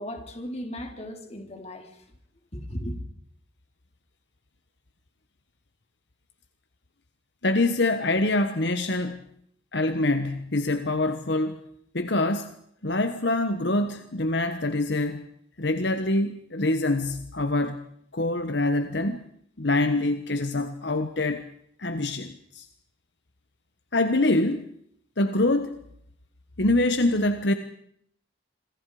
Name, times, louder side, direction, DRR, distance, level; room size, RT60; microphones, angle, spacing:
voice 1, 0.0-1.9 2.5-2.9, equal, 35° left, 3 dB, 3.7 m, -36 dB
voice 2, 7.4-9.2 9.7-11.6 11.9-12.5 12.8-15.3 15.6-17.8 18.1-19.3 19.6-21.5 21.8-22.6 23.9-24.7 25.2-25.8 26.6-27.5, left 2 dB, 65° left, 8 dB, 1.3 m, -25 dB
27.0 x 22.5 x 5.0 m, 0.70 s
head